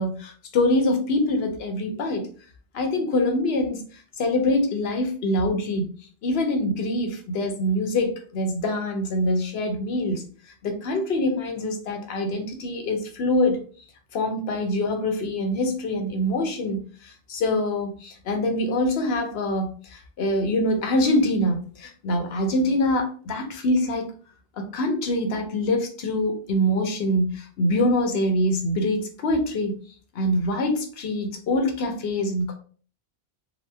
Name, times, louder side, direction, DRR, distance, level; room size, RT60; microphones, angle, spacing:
voice 1, 0.0-2.3 2.7-5.9 6.2-10.2 10.6-13.6 14.1-24.1 24.6-29.8 30.1-32.5, left 1 dB, 75° left, 4 dB, 0.9 m, -24 dB
2.9 x 2.1 x 3.2 m, 0.41 s
omnidirectional pair, 1.0 m